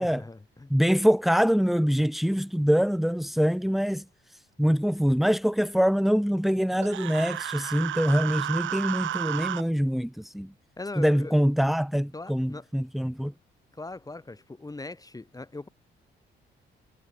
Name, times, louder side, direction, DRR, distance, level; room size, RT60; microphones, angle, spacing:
voice 1, 0.1-0.7 10.8-11.3 12.1-12.6 13.7-15.7, left 2 dB, 20° left, 6.4 m, -39 dB
voice 2, 0.7-10.5 11.0-13.3, equal, ahead, 3.6 m, -24 dB
Human voice, 6.8-9.6, right 12 dB, 75° right, 7.7 m, -32 dB
cardioid pair, 90°, 20 cm